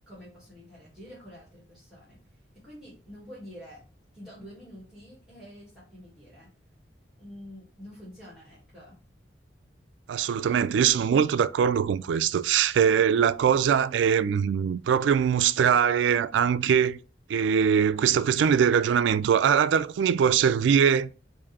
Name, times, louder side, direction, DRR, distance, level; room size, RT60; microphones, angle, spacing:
voice 1, 0.1-2.2 2.5-3.8 4.1-6.5 7.2-9.0, equal, ahead, 1.5 m, -47 dB
voice 2, 10.1-17.0 17.3-21.1, right 7 dB, 75° right, 0.3 m, -22 dB
4.9 x 2.6 x 4.1 m
head